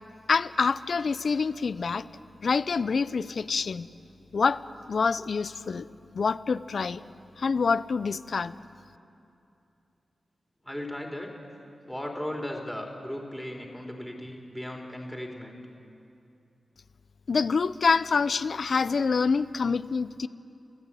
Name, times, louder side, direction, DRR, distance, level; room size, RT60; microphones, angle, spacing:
voice 1, 0.3-2.1 2.4-3.9 4.3-4.6 4.9-5.9 6.1-7.0 7.4-8.5 17.3-20.3, left 5 dB, 65° left, 15 dB, 0.7 m, -26 dB
voice 2, 10.6-11.3 11.9-15.6, left 1 dB, 5° left, 1 dB, 3.9 m, -36 dB
26.5 x 14.0 x 9.1 m, 2.7 s
cardioid pair, 55°, 0 cm